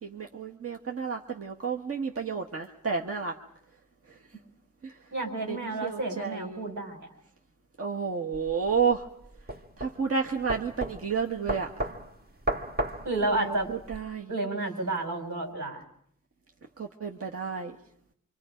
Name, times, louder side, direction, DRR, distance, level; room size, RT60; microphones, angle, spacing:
voice 1, 0.0-3.3 4.8-4.9 5.4-5.6 5.8-6.7 7.8-9.0 9.8-11.7 13.4-13.5 13.9-14.3 16.8-17.7, right 5 dB, 50° right, 1 dB, 1.5 m, -31 dB
voice 2, 5.1-7.1 13.0-13.7 14.3-15.8, right 2 dB, 85° right, 1 dB, 5.9 m, -31 dB
sound 1, 8.3-14.0, right 1 dB, 30° right, 1.7 m, -35 dB
27.0 x 25.0 x 5.2 m, 0.67 s
wide cardioid pair, 85°, 30 cm